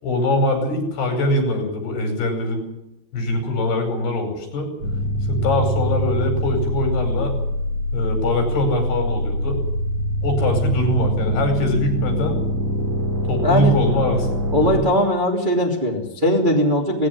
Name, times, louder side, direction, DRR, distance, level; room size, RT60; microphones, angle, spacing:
voice 1, 0.0-2.7 3.1-4.7 5.3-7.3 7.9-9.6 10.2-12.4 13.3-14.3 14.6-14.9, left 1 dB, 65° left, 5 dB, 7.3 m, -22 dB
sound 1, 4.8-14.7, equal, 40° right, 4.6 m, -24 dB
voice 2, 13.4-13.7 14.5-17.1, equal, 15° right, 0 dB, 2.5 m, -19 dB
19.0 x 17.5 x 9.8 m, 0.84 s
omnidirectional pair, 4.9 m